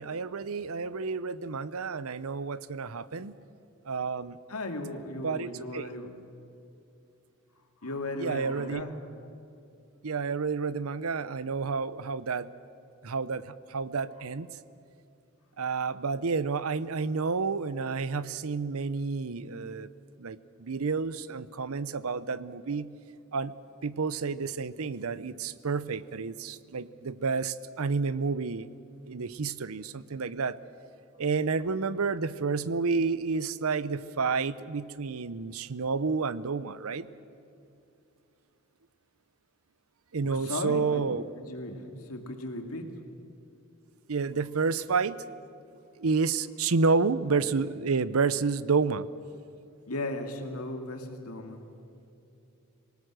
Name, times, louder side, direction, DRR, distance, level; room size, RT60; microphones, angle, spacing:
voice 1, 0.0-3.3 3.9-4.4 5.2-5.9 8.2-8.8 10.0-12.5 13.0-14.5 15.6-19.9 20.2-22.9 23.3-23.5 23.8-28.7 29.1-30.6 31.2-37.1 40.1-41.2 44.1-45.2 46.0-49.1, right 4 dB, 80° right, 17 dB, 0.7 m, -30 dB
voice 2, 4.5-6.2 7.8-8.9 40.2-41.1 41.4-42.9 49.9-51.6, left 2 dB, 90° left, 4 dB, 2.3 m, -36 dB
26.0 x 19.0 x 6.3 m, 2.7 s
head